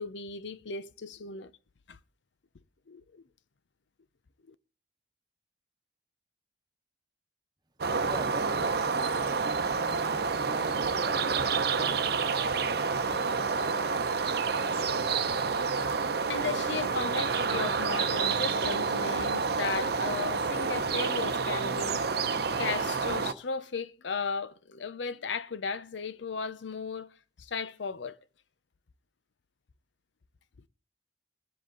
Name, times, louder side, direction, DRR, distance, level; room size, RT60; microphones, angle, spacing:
voice 1, 0.0-1.5 1.9-2.0 2.9-3.2 4.5-4.6 16.3-22.0 22.6-27.1 27.4-28.2, left 5 dB, 85° left, 0.7 m, -36 dB
sound 1, 7.8-23.3, right 5 dB, 60° right, 0.7 m, -29 dB
voice 2, 8.0-12.2 12.9-14.6, right 2 dB, 25° right, 1.0 m, -45 dB
21.0 x 7.7 x 3.9 m
head